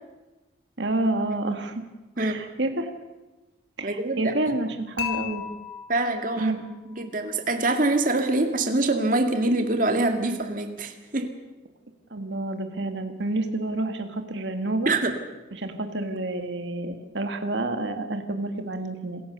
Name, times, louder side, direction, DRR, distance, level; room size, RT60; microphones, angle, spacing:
voice 1, 0.8-1.8 2.2-2.9 3.8-5.4 6.4-6.6 12.1-14.9 15.5-19.2, right 2 dB, 70° right, 6 dB, 1.9 m, -29 dB
voice 2, 3.8-4.3 5.9-6.5 6.8-11.3 14.9-15.2, right 2 dB, 45° right, 5 dB, 2.1 m, -24 dB
Dishes pots and pans / Chink clink, 5.0-7.1, left 11 dB, 80° left, 4.2 m, -36 dB
26.5 x 15.5 x 6.8 m, 1.1 s
head